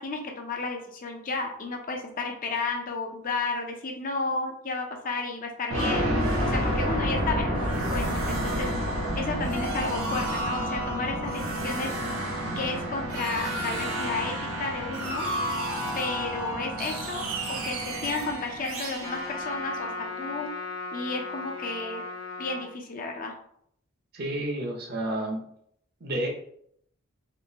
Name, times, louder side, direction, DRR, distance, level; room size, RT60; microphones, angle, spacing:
voice 1, 0.0-6.1 6.4-8.1 8.4-8.7 9.2-11.9 12.6-15.3 16.0-19.9 20.2-20.5 20.9-22.0 22.4-23.4, left 3 dB, 40° left, 2 dB, 0.5 m, -32 dB
sound 1, 5.7-20.4, equal, 80° right, 0.8 m, -30 dB
Trumpet, 19.0-22.7, left 3 dB, 90° left, 1.0 m, -36 dB
voice 2, 24.1-25.4 26.0-26.3, right 1 dB, 50° right, 0 dB, 0.7 m, -30 dB
3.7 x 2.7 x 2.7 m, 0.70 s
head